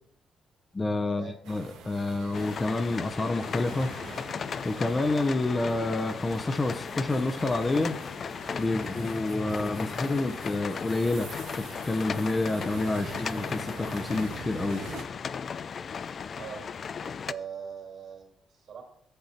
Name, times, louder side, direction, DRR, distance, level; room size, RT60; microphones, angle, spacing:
voice 1, 0.7-3.9 4.6-8.0 8.6-11.3 11.6-14.8, left 2 dB, 25° left, 8 dB, 0.7 m, -28 dB
sound 1, 1.4-15.0, right 5 dB, 90° right, 1.3 m, -45 dB
sound 2, 2.3-17.3, left 6 dB, 50° left, 0.3 m, -37 dB
voice 2, 16.3-16.6 17.0-18.8, right 7 dB, 70° right, -2 dB, 2.7 m, -41 dB
7.7 x 6.8 x 4.3 m, 0.69 s
cardioid pair, 90°, 0 cm